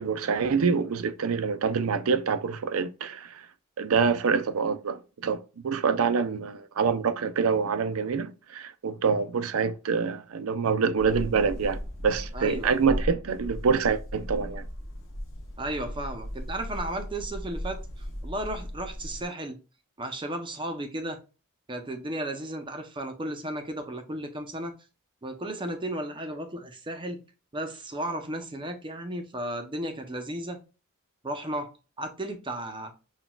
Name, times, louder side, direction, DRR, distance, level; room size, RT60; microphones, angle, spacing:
voice 1, 0.0-3.4 3.8-14.6, right 5 dB, 85° right, 0.5 m, -26 dB
sound 1, 11.0-19.2, equal, 65° left, 0.9 m, -37 dB
voice 2, 12.3-12.7 15.6-17.8 18.2-19.6 20.0-21.2 21.7-24.7 25.2-27.2 27.5-30.6 31.2-31.7 32.0-32.9, right 1 dB, 25° right, 0.7 m, -34 dB
5.9 x 2.3 x 2.3 m
head